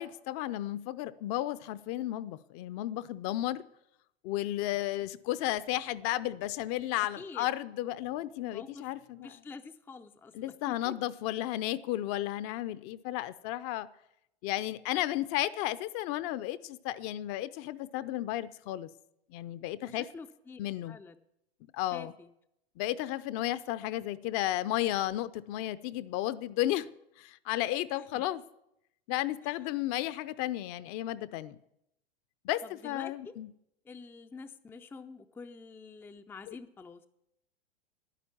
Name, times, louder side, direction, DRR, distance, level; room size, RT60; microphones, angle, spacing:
voice 1, 0.0-3.6 4.2-9.3 10.3-13.9 14.4-18.9 19.3-20.1 20.6-21.0 21.7-22.1 22.8-26.9 27.2-28.4 29.1-31.6 32.4-33.5 36.5-36.6, left 14 dB, 45° left, 0.7 m, -33 dB
voice 2, 7.0-7.5 8.5-11.0 19.8-20.6 20.9-21.2 21.9-22.3 27.9-28.3 29.4-29.8 32.6-33.4 33.8-37.1, left 4 dB, 5° left, 0.5 m, -48 dB
11.0 x 10.0 x 7.1 m
hypercardioid pair, 100°, 31 cm